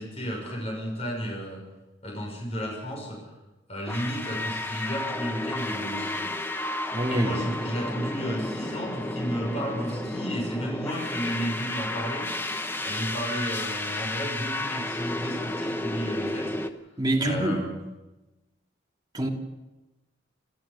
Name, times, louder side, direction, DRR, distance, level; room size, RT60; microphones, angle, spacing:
voice 1, 0.0-1.6 2.0-3.2 3.7-6.3 7.1-12.3 12.8-16.5 17.2-17.9, equal, 35° left, 6.3 m, -32 dB
sound 1, 3.9-16.7, left 1 dB, 10° left, 1.0 m, -32 dB
voice 2, 6.9-7.4 17.0-17.7 19.1-19.3, right 1 dB, 20° right, 2.6 m, -26 dB
28.0 x 14.0 x 7.0 m
head